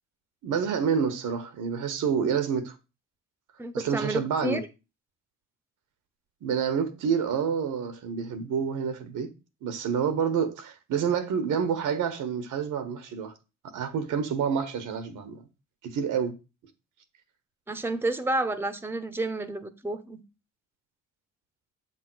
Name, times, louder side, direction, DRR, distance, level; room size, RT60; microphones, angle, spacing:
voice 1, 0.4-2.7 3.7-4.6 6.4-9.3 9.6-13.3 13.7-15.5 15.8-16.4, right 7 dB, 80° right, 1.4 m, -28 dB
voice 2, 3.6-4.6 17.7-20.2, right 2 dB, 5° right, 0.9 m, -30 dB
7.6 x 3.7 x 6.1 m
cardioid pair, 80°, 30 cm